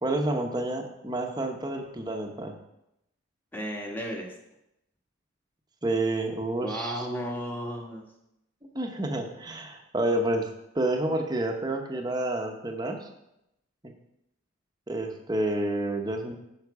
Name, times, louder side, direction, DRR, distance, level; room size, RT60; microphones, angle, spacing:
voice 1, 0.0-2.6 5.8-7.1 8.7-13.1 13.8-13.9 14.9-16.3, right 1 dB, 20° right, 3 dB, 0.9 m, -29 dB
voice 2, 3.5-4.3 6.6-8.0, equal, 10° left, -1 dB, 1.3 m, -33 dB
10.5 x 5.8 x 4.8 m, 0.86 s
head